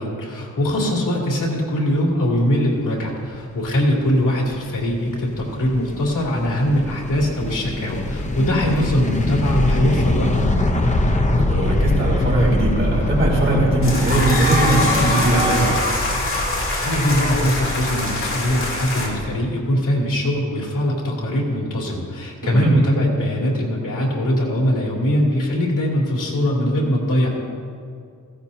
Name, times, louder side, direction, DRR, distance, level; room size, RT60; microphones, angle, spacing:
voice 1, 0.0-10.4 16.8-27.3, equal, 75° left, -2 dB, 2.9 m, -21 dB
sound 1, 4.1-19.4, left 1 dB, 25° left, 0.8 m, -24 dB
voice 2, 11.4-15.7 22.4-22.7, right 1 dB, 40° right, -4 dB, 3.7 m, -20 dB
sound 2, 13.8-19.1, left 1 dB, 40° left, 2.6 m, -23 dB
16.0 x 16.0 x 2.8 m, 2.2 s
wide cardioid pair, 170°, 32 cm